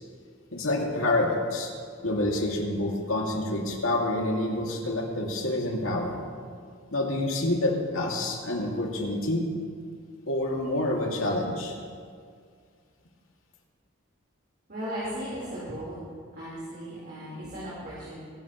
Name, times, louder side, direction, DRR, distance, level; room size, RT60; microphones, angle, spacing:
voice 1, 0.5-1.7 2.0-6.2 6.9-9.5 10.3-11.8, left 1 dB, 75° left, -1 dB, 2.4 m, -27 dB
voice 2, 14.7-16.0 16.3-18.2, equal, 45° right, -9 dB, 4.1 m, -36 dB
23.0 x 12.0 x 3.1 m, 2.1 s
head